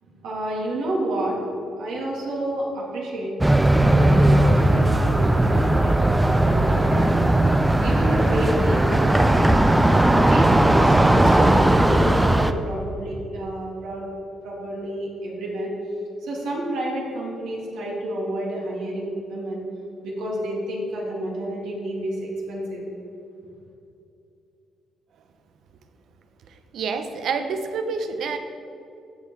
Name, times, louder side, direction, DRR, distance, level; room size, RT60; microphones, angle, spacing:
voice 1, 0.0-1.4 1.8-3.4 3.8-7.4 7.8-9.6 9.9-14.0 14.4-15.7 16.2-19.6 20.0-22.9, right 1 dB, 85° right, -3 dB, 2.7 m, -30 dB
sound 1, 3.4-12.5, right 1 dB, 10° right, 0.5 m, -17 dB
voice 2, 26.7-28.4, right 5 dB, 70° right, 8 dB, 0.9 m, -27 dB
16.0 x 5.7 x 4.6 m, 2.7 s
cardioid pair, 90°, 0 cm